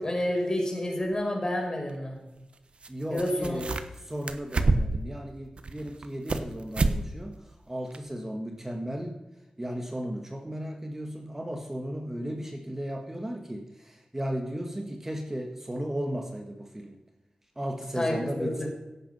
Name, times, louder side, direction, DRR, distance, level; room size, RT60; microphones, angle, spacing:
voice 1, 0.0-2.2 3.1-3.6 18.0-18.7, left 1 dB, 35° left, 0 dB, 5.3 m, -29 dB
sound 1, 1.1-1.2 2.8-2.9 3.1-4.0 4.3-5.1 5.6-6.5 6.7-7.0 7.3-7.4 7.9-8.0, right 3 dB, 60° right, 1.2 m, -27 dB
voice 2, 2.9-3.7 4.0-9.2 9.6-17.0 17.6-18.7, equal, 20° right, 3 dB, 1.8 m, -35 dB
16.5 x 8.8 x 5.6 m, 0.98 s
cardioid pair, 60°, 2 cm